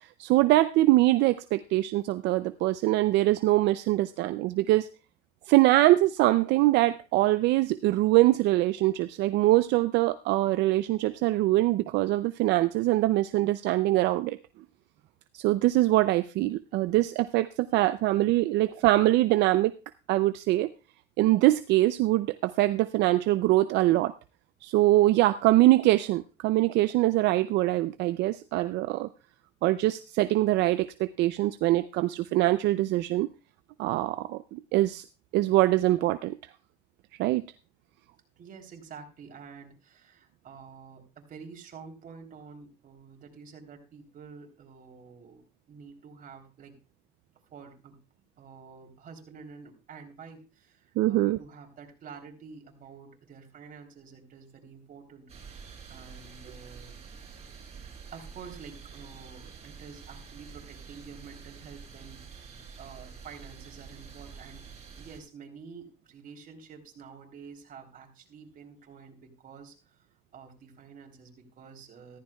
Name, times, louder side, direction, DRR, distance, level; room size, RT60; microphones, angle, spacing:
voice 1, 0.2-4.9 5.5-14.4 15.3-19.7 20.1-20.7 21.2-24.1 24.6-29.1 29.6-33.3 33.8-35.0 35.3-36.4 37.2-37.4 51.0-51.4, right 17 dB, 85° right, 12 dB, 0.5 m, -23 dB
voice 2, 38.4-46.8 47.5-48.0 48.4-57.1 58.1-64.7 65.0-70.1 70.3-72.2, right 5 dB, 55° right, 3 dB, 3.4 m, -49 dB
sound 1, 55.3-65.2, right 6 dB, 40° right, 4.8 m, -47 dB
14.5 x 14.5 x 2.3 m, 0.32 s
cardioid pair, 110°, 17 cm